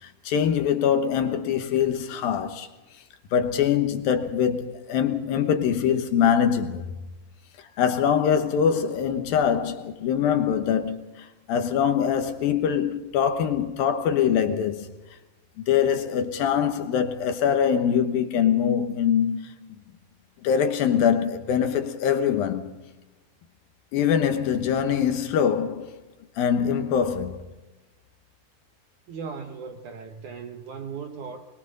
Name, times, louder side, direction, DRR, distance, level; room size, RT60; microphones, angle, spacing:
voice 1, 0.0-2.7 3.3-6.9 7.6-14.9 15.6-19.7 20.4-22.7 23.9-25.9 26.4-27.4, left 8 dB, 70° left, 2.7 m, -23 dB
voice 2, 29.1-31.5, right 5 dB, 65° right, 2.2 m, -37 dB
22.5 x 22.5 x 5.4 m
omnidirectional pair, 4.7 m